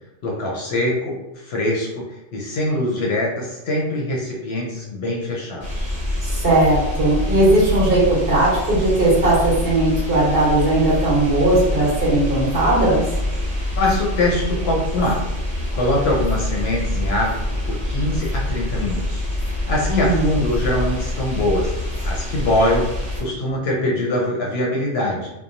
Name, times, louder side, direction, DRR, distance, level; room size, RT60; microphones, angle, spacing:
voice 1, 0.2-2.0 2.3-5.9 13.8-15.2 15.7-21.7 22.0-25.3, left 1 dB, 65° left, -2 dB, 0.7 m, -23 dB
sound 1, 5.6-23.2, left 1 dB, 25° left, 0.8 m, -25 dB
voice 2, 6.2-13.0 19.9-20.3, right 1 dB, 55° right, -6 dB, 1.1 m, -18 dB
2.8 x 2.0 x 2.5 m, 0.94 s
omnidirectional pair, 1.3 m